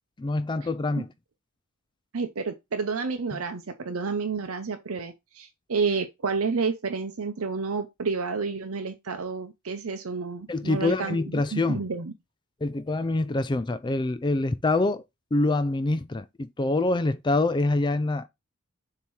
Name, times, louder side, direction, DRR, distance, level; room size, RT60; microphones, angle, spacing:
voice 1, 0.2-1.1 3.3-3.4 10.5-11.8 12.6-15.0 15.3-18.3, left 2 dB, 20° left, 0.4 m, -25 dB
voice 2, 2.1-12.1, right 4 dB, 70° right, 0.7 m, -30 dB
7.1 x 2.9 x 4.6 m
head